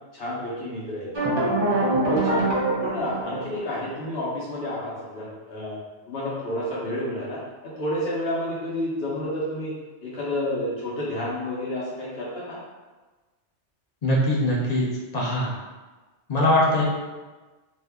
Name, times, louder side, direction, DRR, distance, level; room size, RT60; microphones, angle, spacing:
voice 1, 0.1-1.1 1.3-1.5 1.9-2.4 2.8-5.8 6.1-7.4 7.8-9.7 10.0-12.6, left 1 dB, 65° left, -7 dB, 0.9 m, -30 dB
sound 1, 1.1-3.9, right 2 dB, 30° right, 0.5 m, -24 dB
voice 2, 14.0-14.8 15.1-15.5 16.3-16.8, left 1 dB, 50° left, -4 dB, 0.5 m, -21 dB
2.6 x 2.2 x 3.3 m, 1.3 s
omnidirectional pair, 1.2 m